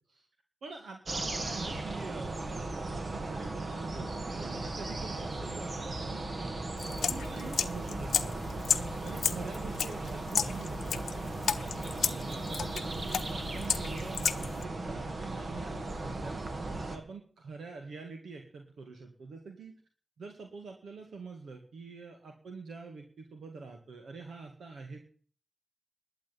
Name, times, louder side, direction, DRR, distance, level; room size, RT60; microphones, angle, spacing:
voice 1, 0.6-6.2 7.1-8.4 9.0-11.3 11.9-16.4 16.9-19.8 20.2-25.0, right 4 dB, 85° right, 3 dB, 2.0 m, -46 dB
sound 1, 1.0-17.0, right 2 dB, 60° right, 2.4 m, -37 dB
sound 2, 6.8-14.6, left 7 dB, 85° left, 0.7 m, -34 dB
12.0 x 8.1 x 9.4 m, 0.43 s
cardioid pair, 45°, 0 cm